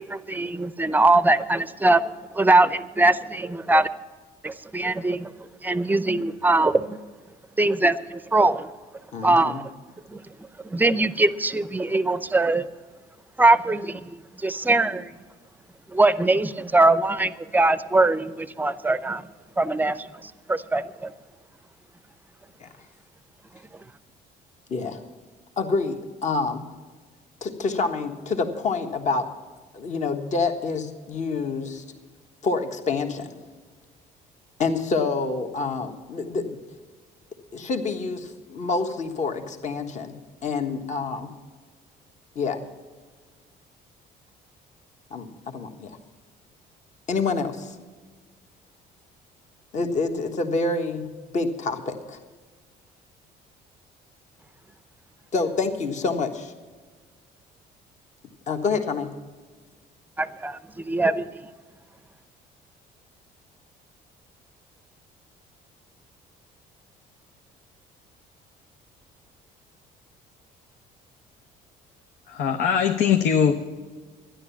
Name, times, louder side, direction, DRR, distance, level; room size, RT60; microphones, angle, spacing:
voice 1, 0.0-3.9 4.4-7.0 7.6-8.7 9.2-9.7 10.1-10.2 10.6-12.7 13.4-15.1 15.9-19.3 19.6-21.1 60.2-61.4, right 2 dB, 10° right, 15 dB, 0.6 m, -22 dB
voice 2, 9.1-9.6 22.6-22.7 24.7-25.0 25.6-26.6 27.4-29.3 29.7-31.8 32.4-33.3 34.6-36.6 37.5-40.1 40.4-41.3 42.3-42.6 45.1-46.0 47.1-47.7 49.7-51.1 51.3-52.2 55.3-56.5 58.5-59.1, left 4 dB, 45° left, 6 dB, 1.4 m, -27 dB
voice 3, 72.3-73.5, left 7 dB, 75° left, 4 dB, 0.9 m, -21 dB
12.5 x 10.5 x 7.1 m, 1.4 s
cardioid pair, 110°, 17 cm